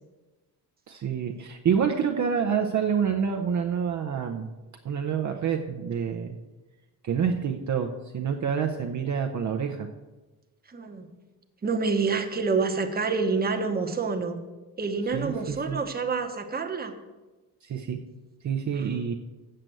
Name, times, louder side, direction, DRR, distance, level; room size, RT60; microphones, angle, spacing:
voice 1, 0.9-4.5 4.8-6.4 7.0-9.9 15.1-15.8 17.6-18.0 18.4-19.1, right 7 dB, 45° right, 3 dB, 0.7 m, -27 dB
voice 2, 10.7-11.1 11.6-14.4 14.8-17.0 18.8-18.9, right 4 dB, 25° right, 5 dB, 1.0 m, -27 dB
7.7 x 6.7 x 7.7 m, 1.2 s
cardioid pair, 125°, 40 cm